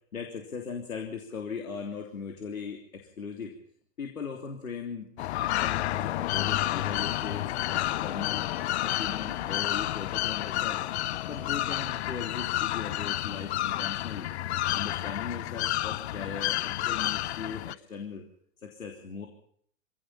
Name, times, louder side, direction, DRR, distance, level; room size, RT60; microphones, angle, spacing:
voice 1, 0.1-3.6 4.0-5.1 5.5-8.4 8.8-10.8 11.2-14.3 14.7-18.2 18.6-19.3, left 5 dB, 85° left, 3 dB, 3.4 m, -38 dB
sound 1, 5.2-17.7, left 15 dB, 55° left, 0.8 m, -30 dB
sound 2, 6.0-11.9, left 8 dB, 30° left, 4.9 m, -45 dB
27.0 x 17.0 x 5.7 m, 0.62 s
hypercardioid pair, 115°, 40 cm